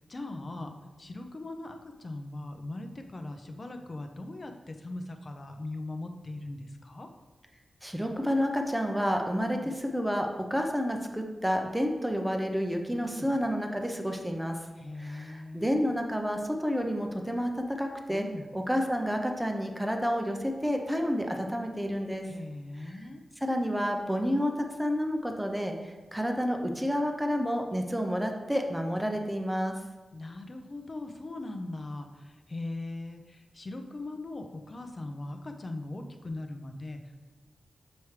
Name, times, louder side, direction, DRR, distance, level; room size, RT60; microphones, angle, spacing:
voice 1, 0.0-7.1 9.4-9.8 12.9-13.3 14.8-15.7 18.1-18.5 22.3-23.2 30.1-37.2, left 2 dB, 35° left, 5 dB, 0.6 m, -40 dB
voice 2, 7.8-14.6 15.0-18.3 18.5-22.3 22.9-23.0 23.4-24.5 24.8-29.7, equal, 5° right, 3 dB, 0.6 m, -30 dB
7.0 x 4.6 x 3.2 m, 1.2 s
wide cardioid pair, 120°, 0 cm